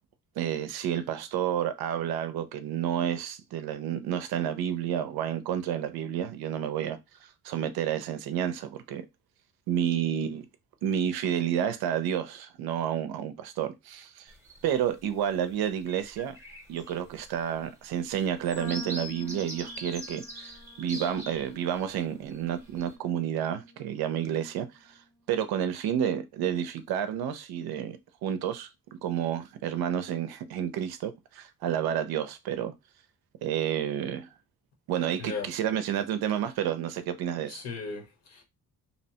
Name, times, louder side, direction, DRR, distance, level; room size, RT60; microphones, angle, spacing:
voice 1, 0.4-9.0 9.7-10.5 10.8-14.3 14.6-16.4 16.7-20.5 20.8-24.9 25.3-28.7 29.0-32.7 33.4-34.3 34.9-37.6, right 9 dB, 80° right, 0.5 m, -30 dB
sound 1, 14.3-14.9 15.4-15.5 15.8-21.8 22.3-22.9, right 1 dB, 5° right, 0.7 m, -43 dB
sound 2, 18.6-24.9, left 2 dB, 80° left, 1.4 m, -48 dB
voice 2, 35.2-35.5 37.5-38.4, left 4 dB, 45° left, 0.8 m, -37 dB
2.8 x 2.1 x 2.7 m
cardioid pair, 140°, 36 cm